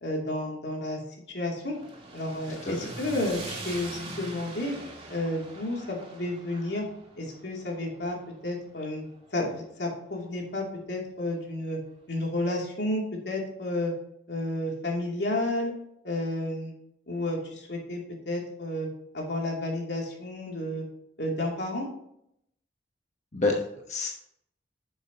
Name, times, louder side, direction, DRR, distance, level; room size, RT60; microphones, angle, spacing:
voice 1, 0.0-1.0 1.3-1.7 2.1-4.7 5.1-6.8 7.2-8.2 8.4-9.0 9.3-11.8 12.1-13.9 14.3-15.7 16.0-16.7 17.1-18.0 18.3-18.9 19.1-20.8 21.2-21.9, left 1 dB, 80° left, -1 dB, 2.7 m, -31 dB
sound 1, 1.6-9.8, right 2 dB, 30° right, 2.3 m, -43 dB
voice 2, 23.3-24.1, left 3 dB, 45° left, 0 dB, 1.1 m, -28 dB
10.0 x 7.2 x 2.9 m, 0.74 s
head